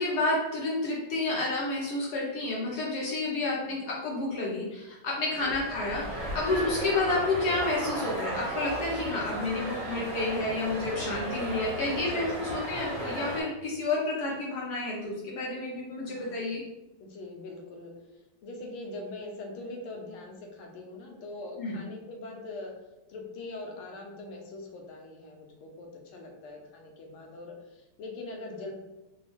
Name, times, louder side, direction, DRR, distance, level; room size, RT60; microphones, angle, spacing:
voice 1, 0.0-16.6 21.6-21.8, left 2 dB, 70° left, -4 dB, 1.0 m, -30 dB
sound 1, 5.4-13.4, right 1 dB, 25° right, 1.4 m, -35 dB
voice 2, 12.1-12.6 16.0-16.5 17.0-17.9 18.4-22.7 23.1-28.7, left 2 dB, 85° left, 1 dB, 1.6 m, -42 dB
4.1 x 2.3 x 3.0 m, 1.0 s
omnidirectional pair, 2.3 m